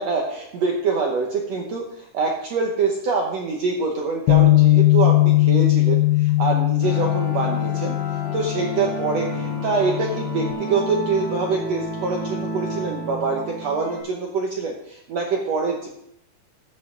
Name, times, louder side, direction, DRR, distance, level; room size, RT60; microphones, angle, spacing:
voice 1, 0.0-8.0 8.3-15.9, right 4 dB, 65° right, 0 dB, 1.8 m, -25 dB
Bass guitar, 4.3-10.5, left 17 dB, 85° left, 2.4 m, -19 dB
sound 1, 6.8-14.0, right 1 dB, 60° left, 4.5 m, -32 dB
13.5 x 7.6 x 3.8 m, 0.75 s
omnidirectional pair, 4.0 m